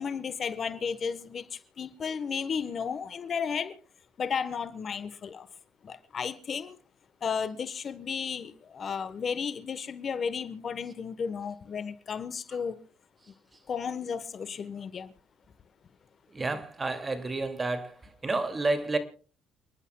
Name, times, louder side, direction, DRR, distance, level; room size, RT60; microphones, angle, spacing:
voice 1, 0.0-1.4 1.8-3.7 4.2-5.5 5.8-6.8 7.2-12.8 13.7-15.1, left 6 dB, 45° left, 1.1 m, -33 dB
voice 2, 16.3-18.0 18.2-19.0, right 3 dB, 25° right, 2.4 m, -30 dB
29.5 x 11.0 x 2.3 m
supercardioid pair, 70°, 0 cm